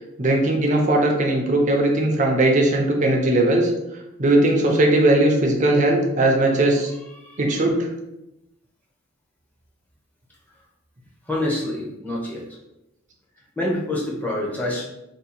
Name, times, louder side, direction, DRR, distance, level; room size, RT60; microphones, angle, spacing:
voice 1, 0.2-3.7 4.2-6.9 7.4-7.9, right 1 dB, 35° right, 1 dB, 0.6 m, -19 dB
voice 2, 11.3-12.4 13.6-14.8, left 1 dB, 10° left, -5 dB, 0.7 m, -26 dB
2.7 x 2.2 x 4.1 m, 0.89 s
head